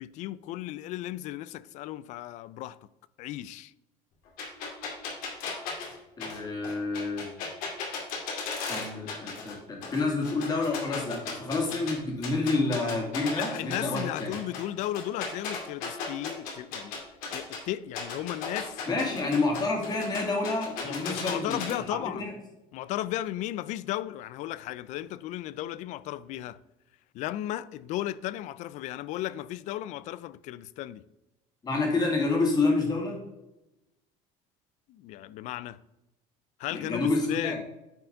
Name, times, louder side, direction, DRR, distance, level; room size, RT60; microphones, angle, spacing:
voice 1, 0.0-2.8 3.2-3.7 13.4-16.9 17.3-18.8 19.2-19.3 20.8-22.3 22.7-26.6 27.1-31.0 34.9-35.8 36.6-37.6, left 14 dB, 60° left, 0.4 m, -35 dB
sound 1, 4.4-9.5 9.8-11.9 12.2-17.6 17.9-21.7, left 5 dB, 75° left, 2.2 m, -35 dB
voice 2, 6.2-7.3 8.7-14.3 18.9-21.8 22.1-22.3 31.6-33.2 36.7-37.6, left 3 dB, 30° left, 2.1 m, -28 dB
9.3 x 4.7 x 3.8 m
cardioid pair, 140°, 14 cm